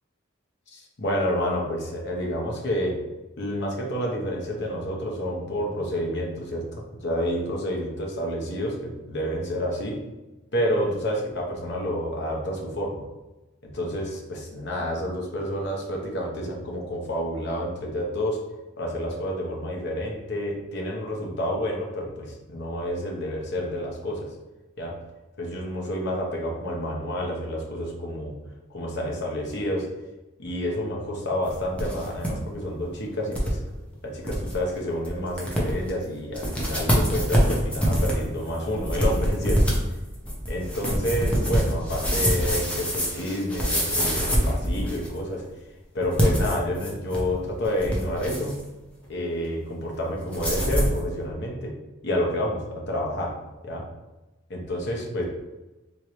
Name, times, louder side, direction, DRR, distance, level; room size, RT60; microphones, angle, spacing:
voice 1, 0.7-3.0 3.4-10.0 10.5-13.0 13.6-18.4 18.7-24.3 24.8-25.0 25.4-28.4 28.7-29.9 30.4-33.6 34.0-39.6 40.5-45.4 45.9-48.6 49.1-51.7 52.0-53.4 53.6-53.8 54.5-55.2, equal, 60° left, -1 dB, 0.9 m, -29 dB
sound 1, 31.5-32.3 32.6-32.7 33.3-33.5 33.9-34.0 34.2-34.5 35.0-35.1 35.4-35.9 36.3-45.2 46.0-47.3 47.6-48.6 50.3-51.0, equal, 5° left, 0.7 m, -25 dB
3.6 x 3.1 x 3.1 m, 1.1 s
head